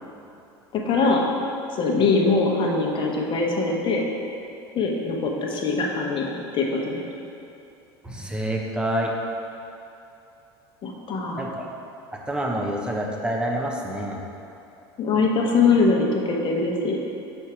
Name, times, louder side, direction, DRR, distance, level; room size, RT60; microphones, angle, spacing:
voice 1, 0.7-1.2 1.7-4.0 4.7-7.0 10.8-11.4 15.0-17.0, left 3 dB, 35° left, 0 dB, 1.0 m, -22 dB
voice 2, 8.0-9.1 11.4-11.6 12.3-14.2, right 1 dB, 5° right, -1 dB, 0.9 m, -27 dB
5.6 x 4.3 x 4.9 m, 2.7 s
hypercardioid pair, 80°, 14 cm